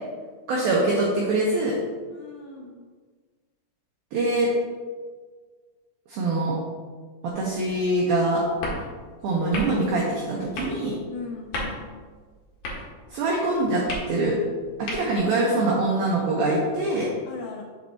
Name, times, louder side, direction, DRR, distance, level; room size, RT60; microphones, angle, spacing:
voice 1, 0.5-1.8 4.1-4.5 6.1-6.5 7.2-8.4 9.2-10.9 13.1-13.8 14.1-14.4 14.8-17.1, right 2 dB, 90° right, -3 dB, 2.1 m, -24 dB
voice 2, 2.1-2.8 11.1-12.0 17.3-17.6, left 4 dB, 80° left, -1 dB, 3.0 m, -38 dB
sound 1, 8.5-15.4, left 1 dB, 60° left, 2.5 m, -37 dB
7.5 x 7.3 x 2.8 m, 1.5 s
omnidirectional pair, 5.6 m